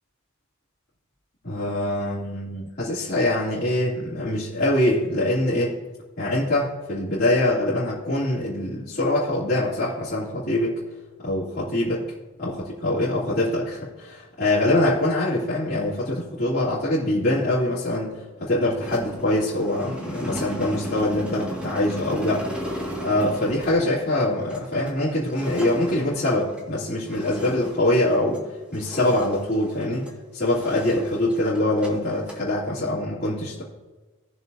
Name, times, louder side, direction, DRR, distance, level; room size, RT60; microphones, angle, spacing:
voice 1, 1.4-5.8 6.2-10.8 11.2-12.1 12.4-22.4 23.0-30.1 30.3-33.6, left 1 dB, 45° left, -10 dB, 2.8 m, -24 dB
sound 1, 18.8-28.5 28.7-30.1 30.5-32.4, equal, 5° right, 1.9 m, -35 dB
18.5 x 7.0 x 2.7 m, 1.2 s
head